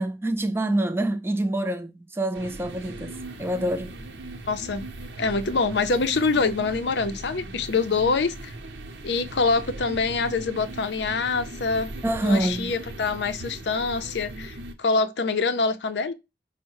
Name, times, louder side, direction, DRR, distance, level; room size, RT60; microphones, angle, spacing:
voice 1, 0.0-3.9 12.0-12.7, right 1 dB, 15° right, 0.4 m, -26 dB
sound 1, 2.3-14.7, right 2 dB, 90° right, 0.7 m, -39 dB
voice 2, 4.5-4.8 5.2-8.5 9.0-11.9 12.2-16.1, left 4 dB, 75° left, 0.5 m, -25 dB
5.3 x 2.1 x 4.6 m
head